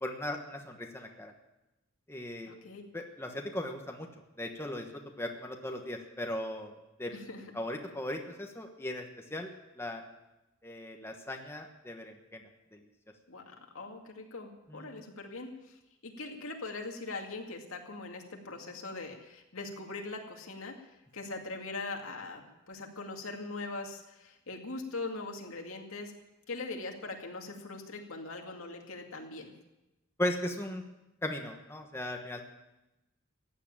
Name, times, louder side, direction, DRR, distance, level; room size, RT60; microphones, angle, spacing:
voice 1, 0.0-1.3 2.1-2.5 2.9-4.1 4.4-4.9 5.2-6.7 7.0-7.1 7.5-9.1 9.3-9.5 9.8-10.0 10.6-12.4 12.7-12.8 14.7-14.9 30.2-30.8 31.2-32.4, left 1 dB, 10° left, 3 dB, 1.2 m, -37 dB
voice 2, 2.5-2.8 7.1-7.5 13.3-26.1 26.5-29.5, left 3 dB, 85° left, 2 dB, 2.3 m, -41 dB
15.0 x 9.8 x 8.7 m, 0.98 s
head